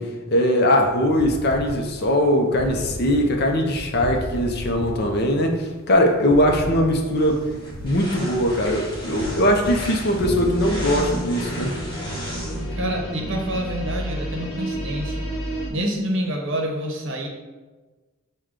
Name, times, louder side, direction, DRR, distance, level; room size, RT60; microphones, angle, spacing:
voice 1, 0.0-7.4 7.8-11.8, equal, 45° left, 2 dB, 0.5 m, -21 dB
sound 1, 0.8-10.4, equal, 25° right, 0.5 m, -34 dB
sound 2, 7.2-12.8, equal, 20° left, 1.1 m, -35 dB
sound 3, 10.2-15.7, right 1 dB, 85° left, 0.9 m, -30 dB
voice 2, 12.7-15.3 15.7-17.3, equal, 60° right, 1 dB, 0.8 m, -27 dB
6.4 x 2.2 x 3.7 m, 1.3 s
head